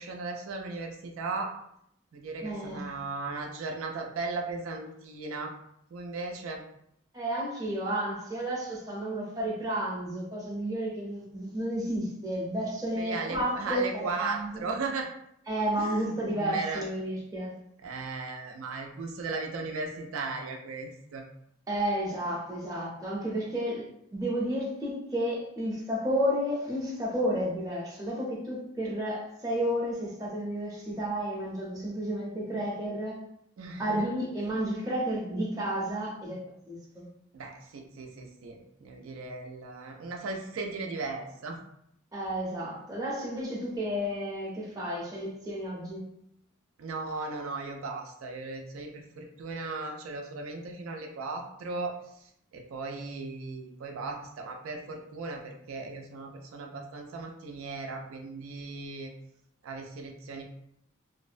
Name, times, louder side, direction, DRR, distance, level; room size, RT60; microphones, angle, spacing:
voice 1, 0.0-1.5 2.1-5.5 5.9-6.6 12.9-15.1 15.8-16.8 17.8-21.2 33.6-34.1 37.3-41.6 46.8-59.1 59.6-60.4, right 3 dB, 85° right, 2 dB, 0.4 m, -37 dB
voice 2, 2.4-2.8 7.1-14.7 15.5-17.6 21.7-33.2 33.8-36.4 36.7-37.1 42.1-46.0, equal, 20° right, -5 dB, 0.6 m, -32 dB
2.5 x 2.0 x 2.4 m, 0.74 s
head